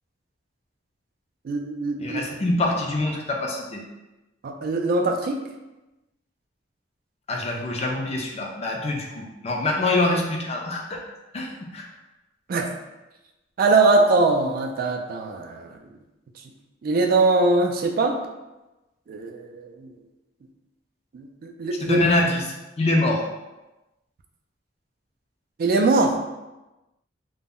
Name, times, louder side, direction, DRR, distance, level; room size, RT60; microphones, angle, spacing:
voice 1, 1.4-2.2 4.4-5.4 12.5-12.7 13.6-15.8 16.8-18.2 19.1-19.9 21.1-22.0 25.6-26.2, right 3 dB, 50° right, 3 dB, 0.3 m, -22 dB
voice 2, 2.0-3.8 7.3-11.0 11.3-11.9 21.8-22.4 22.8-23.2, left 2 dB, 35° left, 0 dB, 0.4 m, -25 dB
2.1 x 2.1 x 3.6 m, 1.0 s
head